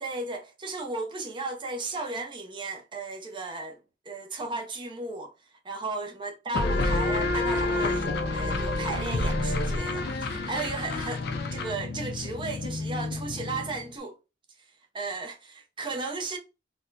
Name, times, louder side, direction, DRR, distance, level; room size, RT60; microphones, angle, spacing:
voice 1, 0.0-3.8 4.1-5.3 5.6-11.2 11.5-14.2 14.9-16.4, right 3 dB, 25° right, 0.5 m, -35 dB
sound 1, 6.5-13.9, left 2 dB, 60° left, 0.5 m, -29 dB
3.9 x 2.1 x 2.6 m
head